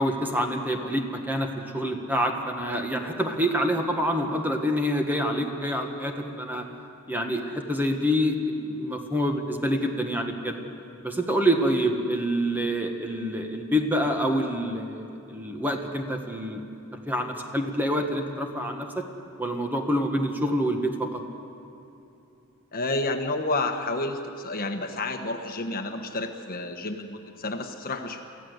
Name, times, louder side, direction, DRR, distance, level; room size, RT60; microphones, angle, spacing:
voice 1, 0.0-6.7 7.1-10.6 11.0-16.6 16.9-19.0 19.4-21.2, equal, 10° right, 3 dB, 1.6 m, -27 dB
voice 2, 22.7-28.2, left 2 dB, 45° left, 5 dB, 1.3 m, -30 dB
24.0 x 15.0 x 8.0 m, 2.9 s
head